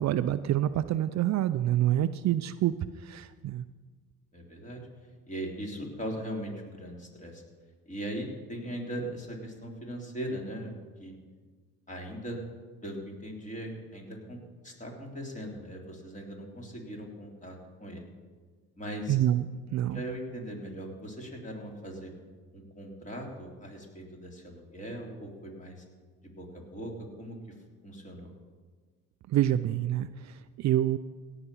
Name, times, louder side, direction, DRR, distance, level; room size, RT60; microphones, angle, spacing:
voice 1, 0.0-3.6 19.1-20.0 29.3-31.0, right 12 dB, 55° right, 13 dB, 0.5 m, -27 dB
voice 2, 4.3-4.8 5.3-7.4 7.9-10.7 11.0-11.1 11.9-12.4 12.8-18.0 18.8-19.2 19.9-22.1 22.5-25.8 26.4-26.9 27.2-27.4 27.8-28.3, equal, 20° left, 0 dB, 3.4 m, -39 dB
17.0 x 5.9 x 6.9 m, 1.5 s
supercardioid pair, 80°, 34 cm